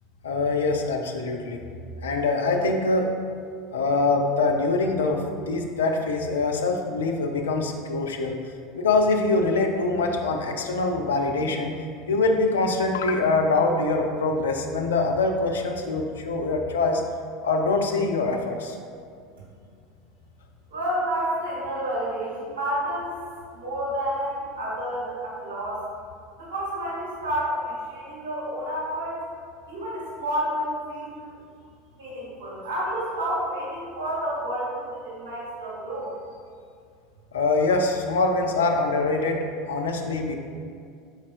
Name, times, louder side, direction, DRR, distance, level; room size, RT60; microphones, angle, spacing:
voice 1, 0.2-1.6 2.0-3.1 3.7-8.4 8.7-11.7 12.1-17.0 17.4-18.8 37.3-40.4, left 3 dB, 70° left, 3 dB, 0.4 m, -24 dB
voice 2, 20.7-23.1 23.5-25.8 26.4-29.2 29.7-31.3 32.0-36.2, equal, 65° right, -7 dB, 1.3 m, -30 dB
5.0 x 4.2 x 2.5 m, 2.3 s
figure-of-eight pair, 75°, 0 cm